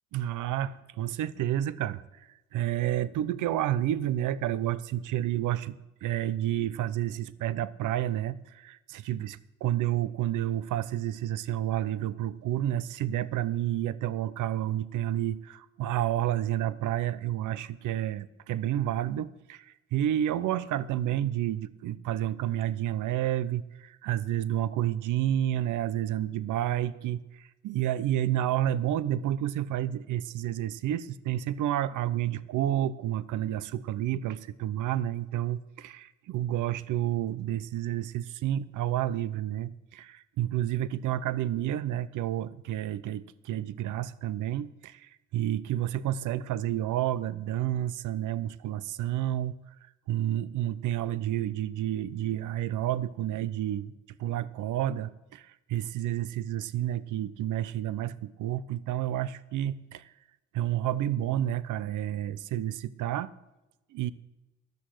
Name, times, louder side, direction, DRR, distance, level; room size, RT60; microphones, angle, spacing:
voice 1, 0.1-49.6 50.1-53.9 54.2-60.1 60.5-63.3 63.9-64.1, right 12 dB, 80° right, 18 dB, 0.7 m, -30 dB
13.0 x 11.0 x 7.8 m, 1.0 s
cardioid pair, 90°, 30 cm